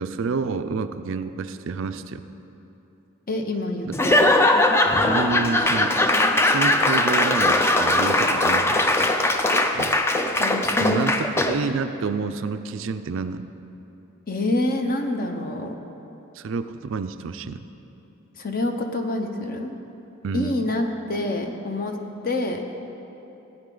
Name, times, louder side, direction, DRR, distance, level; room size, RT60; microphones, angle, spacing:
voice 1, 0.0-2.3 3.8-4.1 5.0-6.0 6.4-9.0 9.7-10.0 10.8-13.4 16.3-17.6 20.2-20.7, right 4 dB, 65° right, 10 dB, 0.4 m, -29 dB
voice 2, 3.3-4.2 4.8-5.0 10.4-11.0 14.3-15.8 18.4-19.7 20.3-22.0 22.2-22.7, left 2 dB, 40° left, 4 dB, 0.8 m, -26 dB
Laughter / Applause / Crowd, 3.9-11.7, left 1 dB, 10° left, 0.4 m, -20 dB
16.0 x 9.1 x 3.9 m, 3.0 s
head